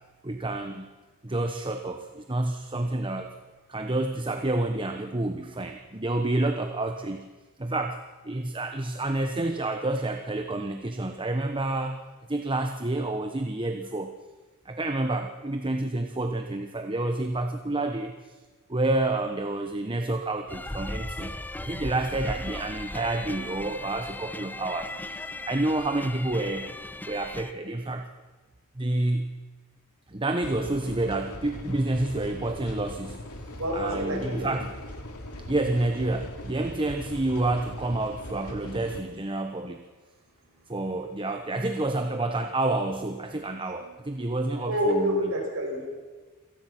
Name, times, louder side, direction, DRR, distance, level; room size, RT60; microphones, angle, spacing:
voice 1, 0.2-0.9 1.2-3.3 3.7-7.3 7.6-8.0 8.2-12.0 12.3-14.1 14.6-18.4 18.7-25.2 25.5-26.7 27.1-28.1 28.8-29.4 30.1-33.2 33.7-34.7 35.5-39.8 40.7-45.3, right 2 dB, 25° right, 6 dB, 1.1 m, -29 dB
sound 1, 20.5-27.5, left 1 dB, 10° left, 0.7 m, -37 dB
sound 2, 30.4-39.0, left 1 dB, 85° left, 3.0 m, -40 dB
voice 2, 33.6-34.5 43.8-43.9 44.7-45.9, equal, 65° right, -1 dB, 7.6 m, -28 dB
27.0 x 18.0 x 6.1 m, 1.3 s
head